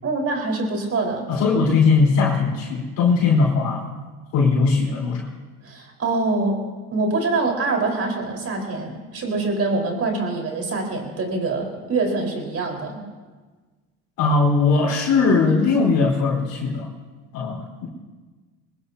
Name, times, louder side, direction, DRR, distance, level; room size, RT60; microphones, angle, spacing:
voice 1, 0.0-1.3 5.6-6.6 6.9-13.0, right 3 dB, 40° right, 1 dB, 4.6 m, -24 dB
voice 2, 1.3-3.9 4.3-5.3 14.2-16.9 17.3-17.9, left 4 dB, 70° left, -3 dB, 4.7 m, -19 dB
24.0 x 19.5 x 2.8 m, 1.3 s
supercardioid pair, 90°, 36 cm